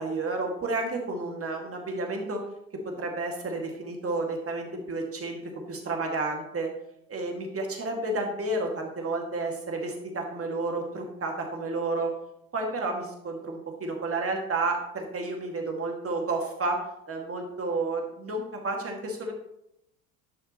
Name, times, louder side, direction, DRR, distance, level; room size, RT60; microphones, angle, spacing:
voice 1, 0.0-2.4 3.0-5.4 5.7-6.7 7.1-12.1 12.5-16.8 17.1-19.3, right 2 dB, 30° right, 1 dB, 2.1 m, -31 dB
11.0 x 5.7 x 3.0 m, 0.80 s
hypercardioid pair, 70°, 47 cm